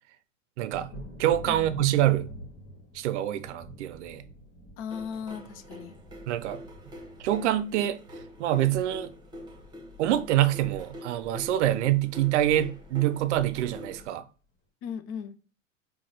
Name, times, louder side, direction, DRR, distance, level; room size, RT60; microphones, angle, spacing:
voice 1, 0.6-0.9 1.2-2.3 2.9-4.2 6.3-6.6 7.2-8.0 8.4-9.1 10.0-14.2, right 13 dB, 60° right, 0.6 m, -25 dB
Thunder, 0.7-10.1 10.4-11.1 11.5-11.6 12.0-12.2, right 1 dB, 50° left, 1.5 m, -46 dB
voice 2, 4.8-6.0 14.8-15.4, left 7 dB, 35° left, 0.6 m, -37 dB
sound 1, 4.9-14.1, left 1 dB, 10° right, 1.2 m, -45 dB
4.5 x 2.3 x 3.9 m
hypercardioid pair, 100°, 40 cm